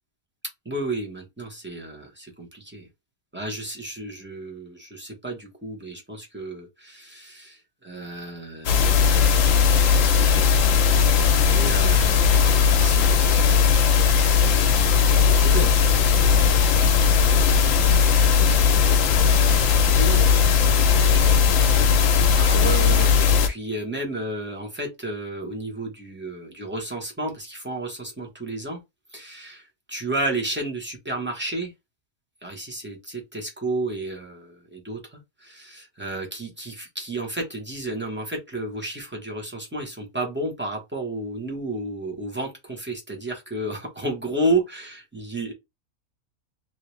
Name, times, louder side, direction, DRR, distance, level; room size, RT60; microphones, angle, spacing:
voice 1, 0.6-2.9 3.3-8.9 9.8-11.1 11.4-13.5 14.0-14.5 14.9-15.8 17.1-18.7 19.2-20.3 20.7-21.5 22.4-28.8 29.1-29.6 29.9-31.7 32.4-45.5, right 2 dB, 10° right, 0.9 m, -32 dB
sound 1, 8.7-23.5, left 6 dB, 70° left, 1.0 m, -18 dB
3.0 x 2.7 x 3.1 m
omnidirectional pair, 1.5 m